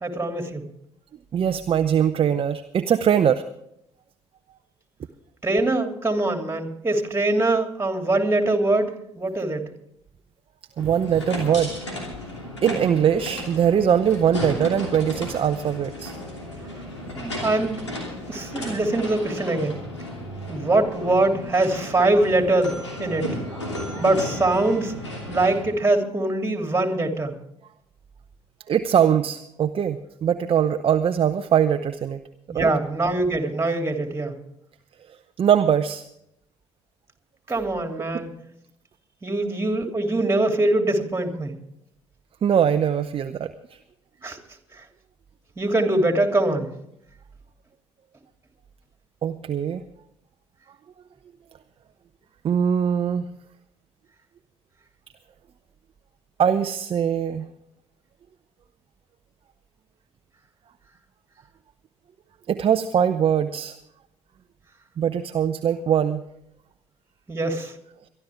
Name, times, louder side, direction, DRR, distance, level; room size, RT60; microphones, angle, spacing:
voice 1, 0.0-0.7 5.4-9.7 17.1-17.8 18.3-19.8 20.5-23.3 23.9-24.9 25.3-27.3 32.5-34.4 37.5-38.3 39.2-41.5 44.2-44.4 45.6-46.7 67.3-67.7, right 2 dB, 15° right, 5 dB, 3.0 m, -23 dB
voice 2, 1.3-3.4 10.8-11.7 12.6-16.1 28.7-32.2 32.5-32.7 35.1-36.0 38.1-38.2 42.4-43.8 49.2-49.8 52.4-53.2 56.4-57.5 62.5-63.8 65.0-66.2, right 8 dB, 40° right, 9 dB, 0.8 m, -22 dB
sound 1, 10.8-25.6, left 1 dB, 90° left, 2.9 m, -34 dB
23.5 x 12.0 x 3.6 m, 0.76 s
figure-of-eight pair, 50°, 14 cm